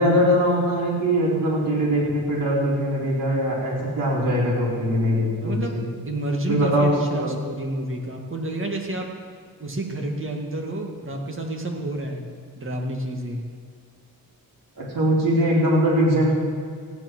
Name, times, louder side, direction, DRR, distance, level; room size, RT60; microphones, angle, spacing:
voice 1, 0.0-5.8 6.5-7.3 14.8-16.4, equal, 55° right, -5 dB, 4.4 m, -21 dB
voice 2, 5.4-5.8 6.1-9.1 9.6-12.3 12.6-13.5, right 1 dB, 35° right, 1 dB, 2.0 m, -30 dB
15.0 x 9.9 x 6.2 m, 2.1 s
wide cardioid pair, 120°, 38 cm